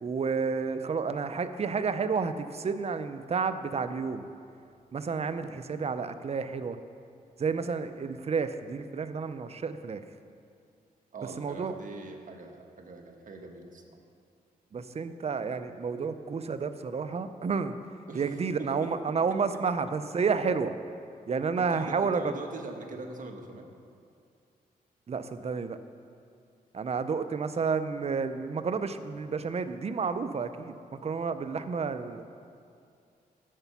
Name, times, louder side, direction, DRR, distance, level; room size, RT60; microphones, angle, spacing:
voice 1, 0.0-4.3 4.9-6.8 7.4-10.0 11.4-11.7 14.7-17.7 18.1-20.8 21.3-22.3 25.1-25.8 26.7-32.2, right 5 dB, 40° right, 10 dB, 0.6 m, -30 dB
voice 2, 11.1-14.0 18.1-18.3 18.6-19.4 21.6-23.7, right 3 dB, 55° right, 3 dB, 1.3 m, -42 dB
11.0 x 6.7 x 6.0 m, 2.4 s
cardioid pair, 80°, 16 cm